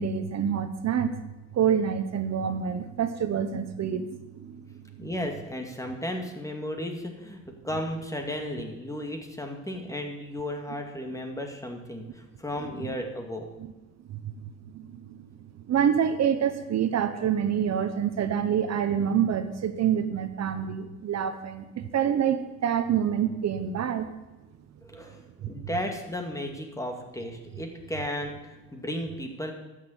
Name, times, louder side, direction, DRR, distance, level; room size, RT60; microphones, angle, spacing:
voice 1, 0.0-4.1 4.4-4.6 12.8-12.9 14.1-14.4 14.7-15.0 15.7-24.1, right 8 dB, 60° right, 10 dB, 1.0 m, -27 dB
voice 2, 5.0-13.5 24.8-29.5, left 1 dB, 10° left, 3 dB, 2.3 m, -34 dB
12.5 x 6.7 x 8.1 m, 1.0 s
cardioid pair, 90°, 30 cm